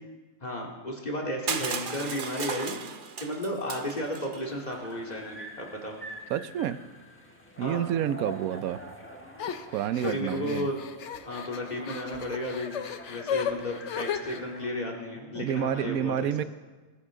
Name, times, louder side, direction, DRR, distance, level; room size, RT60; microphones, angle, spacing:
voice 1, 0.4-2.8 3.2-6.0 7.6-7.8 10.0-10.8 11.3-12.7 13.1-16.3, left 1 dB, 30° left, -1 dB, 2.3 m, -33 dB
Crushing, 1.5-4.4, right 6 dB, 45° right, 0.8 m, -35 dB
sound 1, 4.4-14.7, equal, 10° left, 1.3 m, -46 dB
voice 2, 6.3-6.8 7.6-8.8 9.7-10.7 15.3-16.4, right 10 dB, 90° right, 14 dB, 1.1 m, -29 dB
sound 2, 9.4-14.4, left 8 dB, 60° left, 1.0 m, -35 dB
21.0 x 11.5 x 3.7 m, 1.3 s
omnidirectional pair, 1.5 m